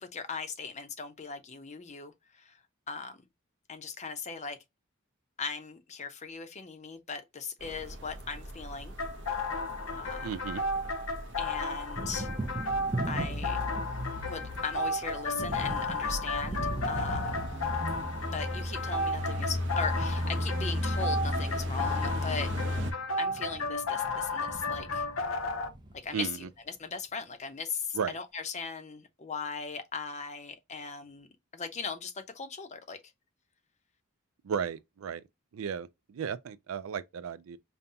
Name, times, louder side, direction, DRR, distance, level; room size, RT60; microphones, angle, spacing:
voice 1, 0.0-2.6 2.9-3.2 3.7-4.6 5.4-8.9 10.0-10.3 11.4-12.3 13.1-13.6 14.3-16.6 16.9-17.3 18.3-22.5 23.2-25.1 26.0-31.3 31.5-33.0, left 5 dB, 35° left, 0.7 m, -38 dB
sound 1, 7.6-22.9, left 1 dB, 60° right, 0.8 m, -35 dB
sound 2, 9.0-25.7, left 2 dB, 70° left, 0.7 m, -34 dB
Thunder, 9.7-10.9 11.2-26.4, right 2 dB, 20° right, 0.7 m, -41 dB
voice 2, 10.2-10.6 26.1-26.5 27.9-28.2 34.4-35.2 35.5-37.6, right 7 dB, 75° right, 0.4 m, -35 dB
5.4 x 2.2 x 2.7 m
head